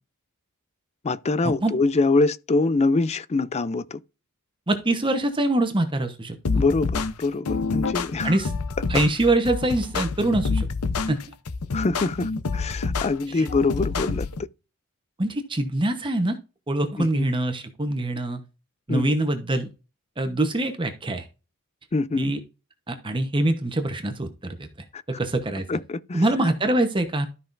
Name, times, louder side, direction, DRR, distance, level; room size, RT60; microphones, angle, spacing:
voice 1, 1.0-4.0 6.6-8.4 11.7-14.3 17.0-17.3 18.9-19.1 21.9-22.3 25.7-26.2, left 3 dB, 30° left, 0.4 m, -24 dB
voice 2, 4.7-6.6 8.2-8.5 8.9-10.7 11.1-11.2 13.3-13.5 15.2-16.4 16.7-18.4 18.9-19.7 20.2-21.2 22.2-22.4 22.9-24.7 25.1-25.6 26.1-27.3, right 1 dB, 20° right, 1.0 m, -24 dB
sound 1, 6.4-14.4, left 4 dB, 80° left, 0.7 m, -27 dB
13.0 x 5.7 x 2.6 m
head